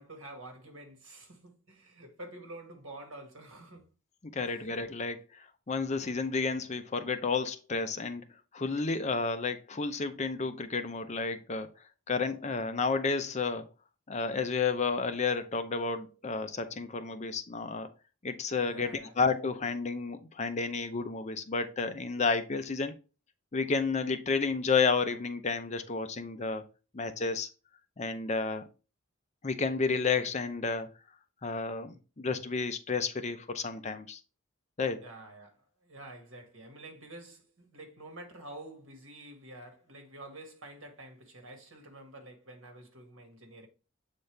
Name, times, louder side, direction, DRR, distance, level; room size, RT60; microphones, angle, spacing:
voice 1, 0.0-3.9 4.4-4.6 18.5-19.2 35.0-43.7, right 1 dB, 65° right, 1.8 m, -48 dB
voice 2, 4.3-5.2 5.7-8.2 8.5-11.7 12.1-13.6 14.1-17.9 18.2-18.9 19.2-22.9 23.5-26.6 26.9-27.5 28.0-28.6 29.4-30.9 31.4-34.2 34.8-35.0, left 4 dB, 30° left, 0.6 m, -31 dB
7.8 x 4.1 x 3.3 m
head